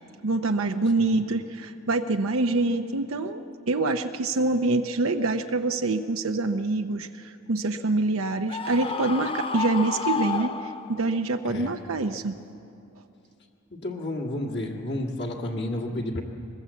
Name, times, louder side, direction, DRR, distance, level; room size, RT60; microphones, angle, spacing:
voice 1, 0.2-12.3, right 2 dB, 75° right, 6 dB, 0.7 m, -26 dB
Screaming, 8.5-11.2, left 5 dB, 25° left, 0.7 m, -31 dB
voice 2, 13.7-16.2, left 1 dB, 55° left, -1 dB, 2.0 m, -31 dB
22.0 x 20.0 x 8.3 m, 2.7 s
head